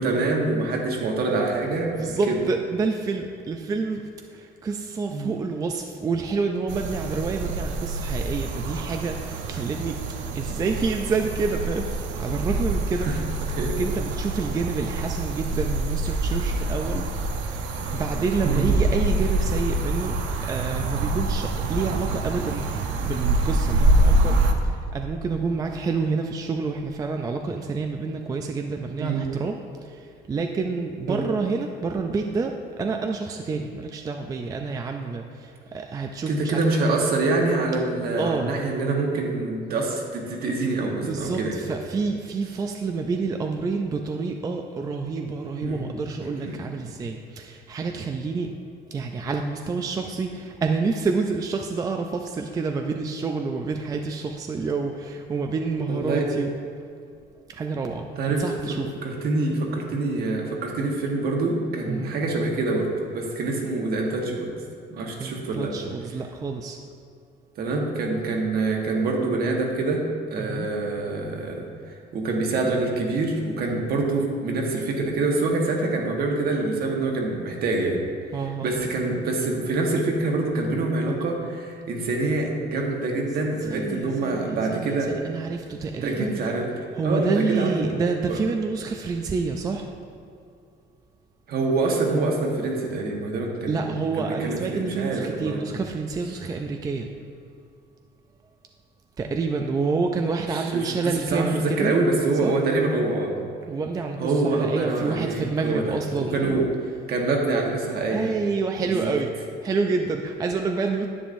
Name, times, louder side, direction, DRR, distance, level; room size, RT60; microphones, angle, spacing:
voice 1, 0.0-2.4 5.1-5.4 13.0-13.2 13.5-13.7 18.4-18.6 29.0-29.2 31.1-31.2 36.3-41.6 45.6-45.8 46.2-46.6 55.9-56.2 58.2-58.4 59.0-64.5 64.9-65.7 67.6-70.0 70.3-78.0 78.6-85.2 86.0-86.7 87.0-87.9 88.3-88.4 91.5-95.6 100.5-103.3 104.2-106.7 107.1-108.2 108.8-109.2, right 3 dB, 55° right, 0 dB, 1.3 m, -25 dB
voice 2, 1.9-4.0 4.3-10.0 10.3-13.1 13.6-17.6 17.9-20.1 20.4-22.7 23.0-36.6 38.2-38.5 41.0-48.5 48.9-56.5 57.5-58.1 58.4-58.9 61.9-62.1 65.2-66.8 70.4-70.7 78.3-78.7 83.7-86.4 87.0-89.9 93.7-97.1 99.2-101.9 102.4-102.5 103.7-106.7 108.1-109.3 109.6-111.1, right 4 dB, 20° right, 4 dB, 0.3 m, -28 dB
sound 1, 6.7-24.5, right 2 dB, 80° right, 0.8 m, -25 dB
10.0 x 9.0 x 2.6 m, 2.4 s
cardioid pair, 165°, 19 cm